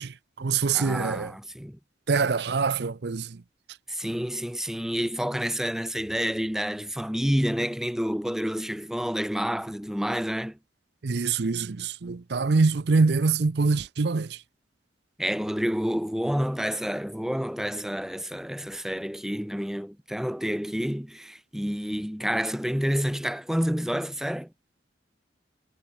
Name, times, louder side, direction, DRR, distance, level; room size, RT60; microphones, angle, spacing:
voice 1, 0.0-1.3 2.1-3.4 11.0-14.4, right 4 dB, 60° right, 0.6 m, -25 dB
voice 2, 0.7-1.8 3.9-10.6 15.2-24.5, equal, ahead, 0.8 m, -29 dB
head